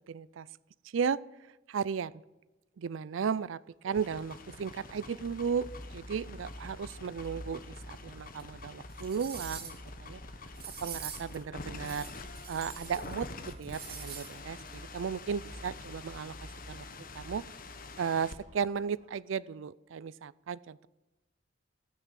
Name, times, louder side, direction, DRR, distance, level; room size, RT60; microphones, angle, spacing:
voice 1, 0.1-0.5 0.8-1.2 1.7-2.2 2.8-10.2 10.8-12.1 12.5-16.3 16.7-16.9 17.1-17.4 18.0-20.9, right 6 dB, 85° right, 21 dB, 0.4 m, -35 dB
sound 1, 3.7-19.4, equal, 75° left, 3.5 m, -50 dB
sound 2, 3.9-18.4, left 3 dB, 45° left, 1.3 m, -47 dB
sound 3, 8.4-8.5 8.9-9.9 10.5-11.4 11.8-13.2 13.5-14.3 14.7-14.8, right 7 dB, 55° right, 2.6 m, -44 dB
16.5 x 9.4 x 7.5 m, 1.0 s
head